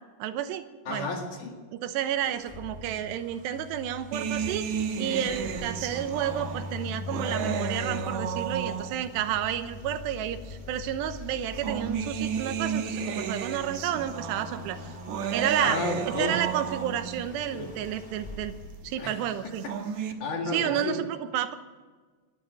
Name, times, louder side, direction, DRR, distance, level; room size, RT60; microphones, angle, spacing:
voice 1, 0.2-1.1 1.7-4.6 5.0-14.8 15.3-15.8 16.2-18.5 18.8-19.7 20.5-21.6, right 10 dB, 85° right, 10 dB, 3.1 m, -31 dB
voice 2, 0.9-1.6 15.6-16.4 17.3-17.8 19.0-19.7 20.0-21.0, left 2 dB, 55° left, 2 dB, 3.1 m, -33 dB
sound 1, 2.2-19.7, left 5 dB, 25° left, 1.0 m, -42 dB
sound 2, 4.1-9.2 10.1-10.2 11.3-17.2 19.4-20.1, right 7 dB, 65° right, 1.9 m, -33 dB
20.5 x 12.5 x 5.1 m, 1.4 s
omnidirectional pair, 4.9 m